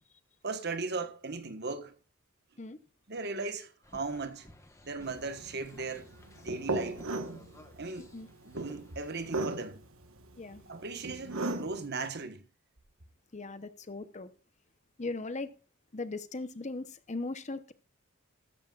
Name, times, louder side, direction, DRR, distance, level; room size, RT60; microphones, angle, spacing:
voice 1, 0.4-1.9 3.1-4.5 4.8-6.1 6.4-7.1 7.8-8.1 8.4-9.8 10.7-12.4, right 3 dB, 50° right, 1.3 m, -37 dB
sound 1, 3.8-9.4, left 1 dB, 15° left, 1.3 m, -57 dB
sound 2, 5.0-11.9, right 2 dB, 75° right, 1.4 m, -37 dB
voice 2, 13.3-14.3 15.0-15.5 15.9-17.7, left 3 dB, 35° left, 0.8 m, -38 dB
14.5 x 13.5 x 2.5 m
head